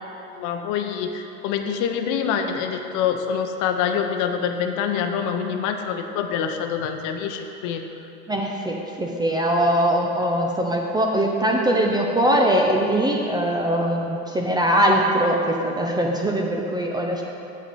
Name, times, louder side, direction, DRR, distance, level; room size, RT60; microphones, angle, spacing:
voice 1, 0.4-7.8, left 7 dB, 45° left, 5 dB, 0.8 m, -25 dB
voice 2, 8.3-17.2, right 1 dB, 10° right, 0 dB, 0.5 m, -21 dB
8.8 x 7.7 x 4.1 m, 3.0 s
hypercardioid pair, 100°, 43 cm